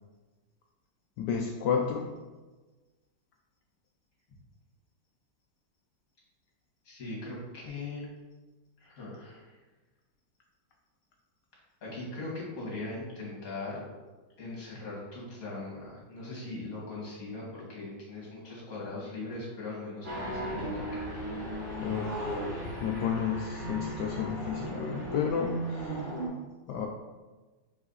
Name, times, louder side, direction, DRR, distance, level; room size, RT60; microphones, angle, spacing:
voice 1, 1.2-2.1 21.8-26.1 26.7-26.9, left 7 dB, 75° left, 2 dB, 1.1 m, -32 dB
voice 2, 6.8-8.1 8.8-9.6 11.8-13.9 14.4-21.1, left 2 dB, 45° left, -4 dB, 2.3 m, -40 dB
sound 1, 20.0-26.3, right 1 dB, 30° right, 1.3 m, -36 dB
4.9 x 4.8 x 4.0 m, 1.2 s
omnidirectional pair, 2.1 m